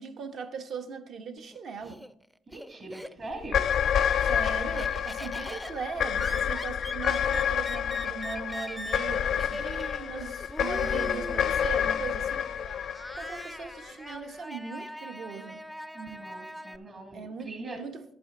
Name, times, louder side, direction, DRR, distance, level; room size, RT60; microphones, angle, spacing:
voice 1, 0.0-2.0 4.2-12.8 13.1-15.6 17.1-18.0, right 5 dB, 65° right, 1.0 m, -39 dB
Laughter, 1.4-3.5 3.9-16.8, equal, 5° right, 0.4 m, -42 dB
voice 2, 2.5-3.6 10.9-11.4 15.9-17.8, right 3 dB, 50° right, 2.0 m, -41 dB
sound 1, 3.4-13.9, left 8 dB, 65° left, 0.3 m, -29 dB
11.5 x 7.9 x 3.8 m
cardioid pair, 90°, 0 cm